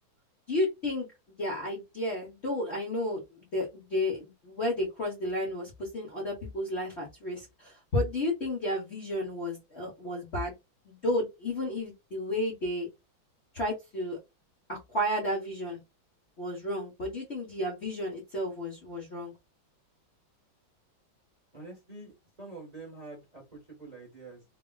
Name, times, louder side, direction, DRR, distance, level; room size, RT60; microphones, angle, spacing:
voice 1, 0.5-1.1 1.4-10.5 10.8-12.9 13.5-14.2 14.7-15.8 16.4-19.3, left 1 dB, 45° left, 0.9 m, -32 dB
voice 2, 21.5-24.4, right 3 dB, 25° right, 1.0 m, -46 dB
3.4 x 2.4 x 2.2 m
omnidirectional pair, 2.3 m